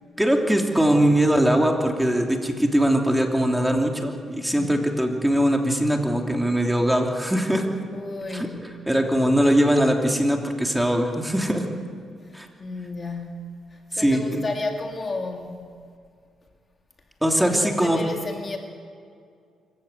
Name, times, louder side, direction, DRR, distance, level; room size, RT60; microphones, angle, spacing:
voice 1, 0.2-7.7 8.3-8.5 8.9-11.7 12.3-12.5 13.9-14.4 17.2-18.0, equal, 5° right, 2 dB, 2.9 m, -21 dB
voice 2, 4.5-4.9 7.9-8.8 12.2-15.8 17.4-18.6, left 2 dB, 35° left, 3 dB, 2.3 m, -33 dB
25.0 x 15.5 x 8.0 m, 2.2 s
cardioid pair, 85°, 0 cm